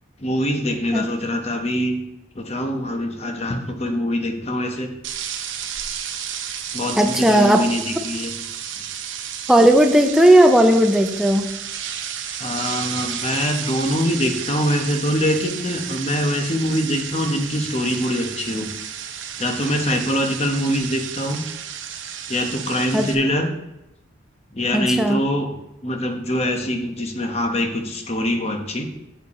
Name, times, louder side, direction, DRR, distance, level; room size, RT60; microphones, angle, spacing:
voice 1, 0.2-2.0 2.4-4.9 6.7-8.3 12.4-18.7 19.4-21.4 22.3-23.5 24.5-25.5 25.8-28.9, equal, 30° left, 4 dB, 1.0 m, -23 dB
sound 1, 5.0-23.1, right 8 dB, 75° right, 0.8 m, -32 dB
voice 2, 7.0-7.6 9.5-11.5 22.9-23.1 24.7-25.2, right 1 dB, 5° right, 5 dB, 0.5 m, -15 dB
8.0 x 6.6 x 4.2 m, 0.92 s
head